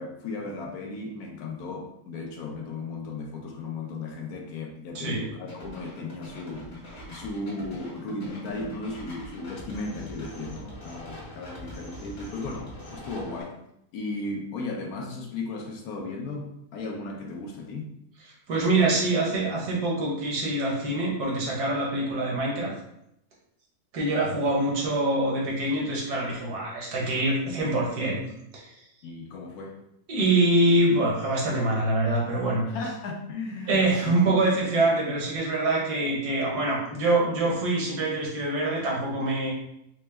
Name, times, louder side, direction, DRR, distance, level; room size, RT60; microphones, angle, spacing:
voice 1, 0.0-6.7 7.1-13.6 13.9-17.9 18.5-19.0 24.5-24.6 29.0-29.8 32.7-34.7 37.4-37.5, left 3 dB, 75° left, 2 dB, 1.1 m, -36 dB
sound 1, 5.5-13.4, left 1 dB, 45° left, 1.3 m, -42 dB
voice 2, 18.5-22.7 23.9-28.2 28.5-28.7 30.1-32.6 33.7-39.5, right 2 dB, 80° right, -3 dB, 1.6 m, -25 dB
4.5 x 2.0 x 3.3 m, 0.79 s
omnidirectional pair, 1.7 m